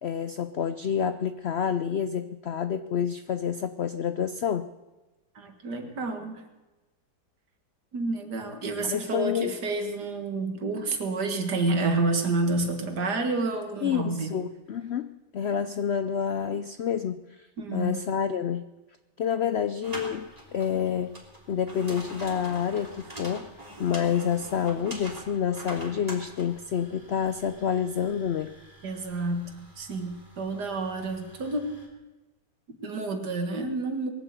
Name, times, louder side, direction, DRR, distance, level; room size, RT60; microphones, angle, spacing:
voice 1, 0.0-4.7 8.9-9.5 13.8-17.5 17.7-18.6 19.2-21.1 21.5-23.5 23.8-28.5, left 8 dB, 70° left, 12 dB, 0.6 m, -28 dB
voice 2, 5.4-6.4 7.9-14.4 17.6-18.0 28.8-31.7 32.7-34.1, right 3 dB, 75° right, 5 dB, 2.3 m, -29 dB
sound 1, 19.8-31.9, right 1 dB, 20° right, 3.0 m, -45 dB
21.0 x 8.0 x 8.0 m, 1.1 s
omnidirectional pair, 1.8 m